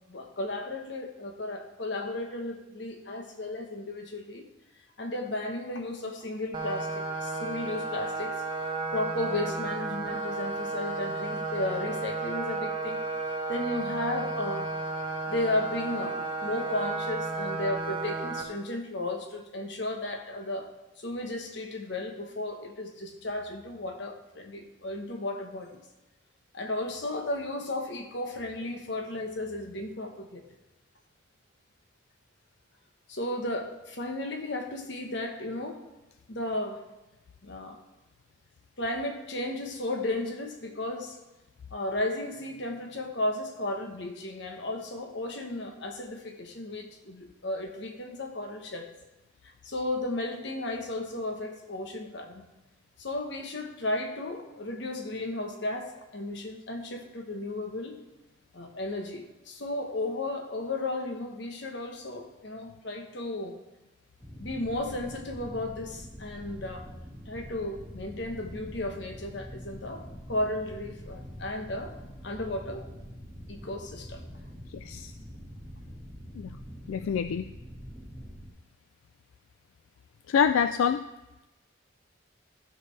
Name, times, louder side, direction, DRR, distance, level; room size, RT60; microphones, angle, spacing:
voice 1, 0.1-4.4 5.0-8.3 8.9-13.0 13.5-14.7 15.3-20.7 21.0-25.8 26.5-30.4 33.1-35.8 36.3-36.8 37.4-37.8 38.8-41.2 41.7-48.9 49.6-52.4 53.0-58.0 58.5-63.6 64.4-66.9 67.3-71.9 72.2-72.9 73.5-74.2, left 1 dB, 60° left, 4 dB, 1.2 m, -34 dB
sound 1, 6.5-18.4, right 3 dB, 25° right, 1.0 m, -33 dB
sound 2, 64.2-78.5, equal, 10° left, 1.6 m, -45 dB
voice 2, 74.7-75.1 76.4-76.5 76.9-77.4 80.3-81.0, left 7 dB, 85° left, 10 dB, 0.3 m, -26 dB
14.5 x 6.4 x 3.4 m, 1.0 s
head